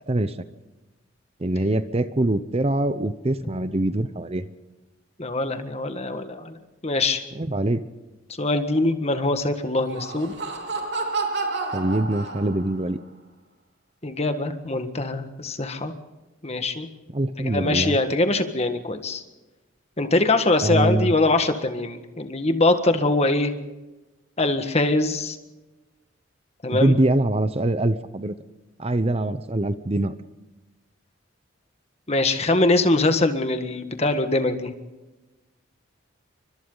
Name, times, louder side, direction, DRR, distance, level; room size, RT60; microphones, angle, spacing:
voice 1, 1.4-4.5 7.3-7.8 11.7-13.0 17.1-18.0 20.6-21.1 26.7-28.3 28.8-30.1, right 1 dB, 30° right, 12 dB, 0.7 m, -23 dB
voice 2, 5.2-6.6 6.8-7.2 8.4-10.3 14.0-15.9 16.4-16.9 17.4-19.2 20.0-23.5 24.4-25.4 26.6-26.9 32.1-34.7, left 2 dB, 30° left, 8 dB, 1.6 m, -23 dB
Laughter, 9.7-12.8, right 3 dB, 55° right, 3.8 m, -30 dB
30.0 x 24.5 x 3.9 m, 1.1 s
head